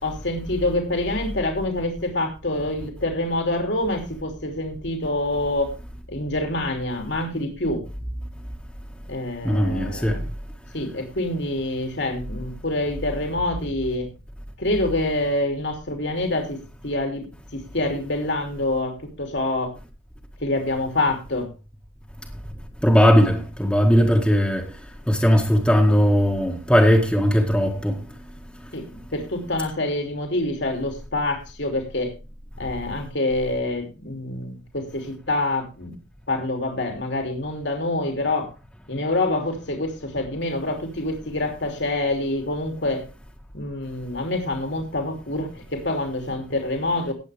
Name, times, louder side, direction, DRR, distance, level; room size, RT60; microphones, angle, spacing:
voice 1, 0.0-5.7 6.1-7.8 9.1-10.2 10.7-14.1 14.6-17.3 17.5-19.7 20.4-21.5 28.7-28.8 29.1-32.1 32.6-36.0 36.3-38.5 38.9-43.0 43.5-47.1, left 2 dB, 65° left, 3.0 m, -26 dB
voice 2, 9.4-10.2 22.8-24.6 25.1-28.0, equal, 5° left, 1.8 m, -18 dB
19.0 x 8.4 x 3.5 m
head